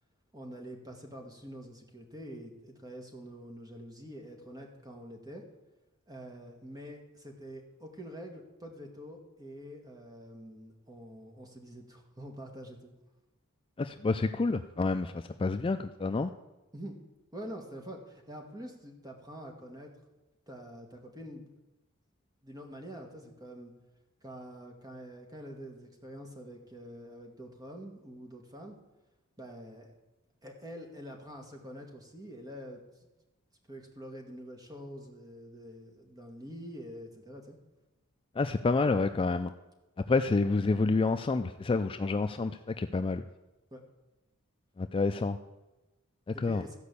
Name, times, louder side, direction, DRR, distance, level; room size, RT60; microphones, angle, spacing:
voice 1, 0.3-5.5 6.1-12.9 16.7-17.0 17.3-19.9 20.5-21.5 22.4-23.7 24.2-28.8 29.4-29.9 30.4-32.8 33.7-37.6 43.7-43.8 46.3-46.7, equal, 20° right, 2 dB, 1.8 m, -46 dB
voice 2, 13.8-16.3 38.4-39.5 40.1-42.5 42.8-43.2 44.8-45.4 46.3-46.6, left 3 dB, 25° left, 8 dB, 0.4 m, -28 dB
14.0 x 5.2 x 8.3 m, 1.0 s
head